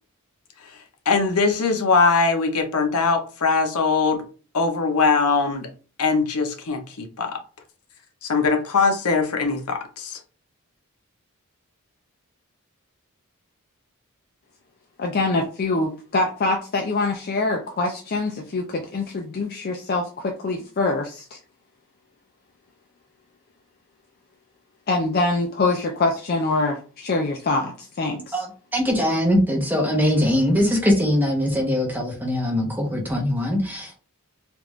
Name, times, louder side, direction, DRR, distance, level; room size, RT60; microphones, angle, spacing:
voice 1, 1.1-4.2 4.5-5.7 6.0-7.4 8.2-10.2, left 4 dB, 80° left, 0.7 m, -21 dB
voice 2, 15.0-21.4 24.9-28.3, left 3 dB, 45° left, 0.4 m, -24 dB
voice 3, 28.7-34.0, equal, 10° right, 0.9 m, -21 dB
3.4 x 2.5 x 3.1 m
head